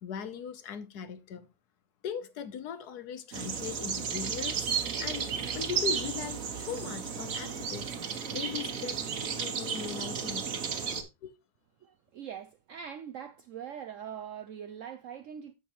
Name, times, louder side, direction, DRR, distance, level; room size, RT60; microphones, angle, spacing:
voice 1, 0.0-1.5 2.0-7.9 8.3-9.0 9.3-10.5 11.2-11.3, left 7 dB, 70° left, 1.3 m, -39 dB
sound 1, 3.3-11.0, right 6 dB, 55° right, 1.4 m, -33 dB
voice 2, 11.8-15.5, right 8 dB, 70° right, 0.7 m, -42 dB
9.2 x 7.4 x 3.0 m
omnidirectional pair, 1.8 m